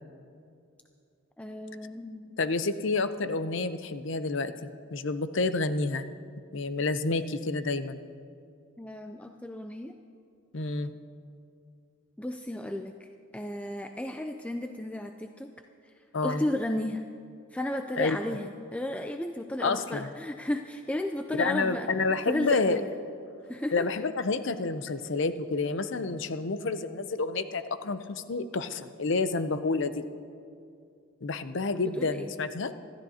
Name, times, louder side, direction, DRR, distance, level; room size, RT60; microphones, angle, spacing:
voice 1, 1.4-2.4 8.8-9.9 12.2-15.5 16.2-17.0 17.5-21.9 22.3-22.9 23.5-23.9 31.7-32.3, left 1 dB, 5° left, 5 dB, 0.3 m, -34 dB
voice 2, 2.4-6.1 6.5-8.0 10.5-10.9 16.1-16.4 18.0-18.2 19.6-20.1 21.3-22.8 23.7-30.0 31.2-32.7, left 3 dB, 60° left, 11 dB, 0.6 m, -29 dB
25.5 x 13.0 x 2.8 m, 2.4 s
head